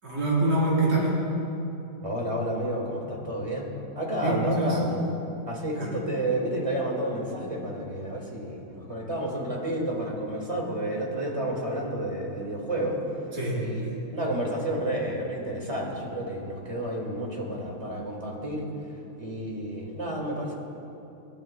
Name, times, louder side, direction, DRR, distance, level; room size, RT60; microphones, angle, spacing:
voice 1, 0.0-1.1 4.2-4.8 5.8-5.9 13.3-14.0, right 2 dB, 55° right, -8 dB, 4.4 m, -25 dB
voice 2, 2.0-5.0 5.4-13.0 13.6-18.7 19.2-20.5, right 1 dB, 20° right, -1 dB, 2.1 m, -30 dB
29.0 x 11.5 x 2.3 m, 2.8 s
omnidirectional pair, 1.9 m